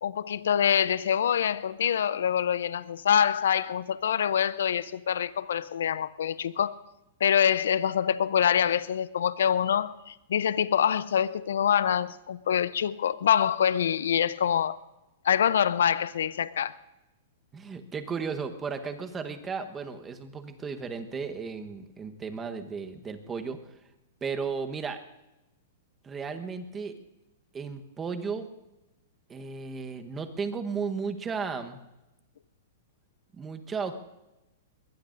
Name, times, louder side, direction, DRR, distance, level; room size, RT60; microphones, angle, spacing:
voice 1, 0.0-6.8 7.2-14.8 15.2-16.7, left 8 dB, 80° left, 16 dB, 0.6 m, -25 dB
voice 2, 17.5-23.6 24.2-25.0 26.0-27.0 27.5-28.5 29.3-31.8 33.4-34.0, right 5 dB, 15° right, 7 dB, 1.1 m, -34 dB
22.5 x 20.5 x 2.6 m, 0.97 s
hypercardioid pair, 150°, 0 cm